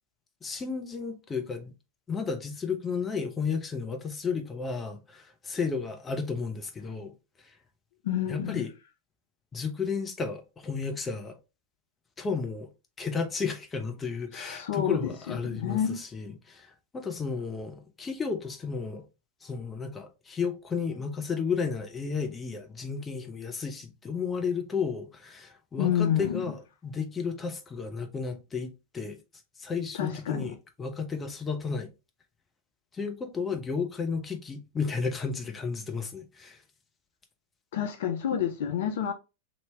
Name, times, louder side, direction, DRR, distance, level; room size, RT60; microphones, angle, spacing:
voice 1, 0.4-1.7 2.1-7.1 8.3-8.7 9.5-11.4 12.2-12.7 13.0-16.7 16.9-19.0 19.4-29.2 29.6-31.9 32.9-36.6, left 5 dB, 20° left, 0.7 m, -33 dB
voice 2, 8.0-8.6 14.3-15.0 15.3-16.0 25.8-26.4 30.0-30.4 37.7-39.1, left 9 dB, 55° left, 0.4 m, -28 dB
2.9 x 2.8 x 3.3 m
figure-of-eight pair, 90°, 0 cm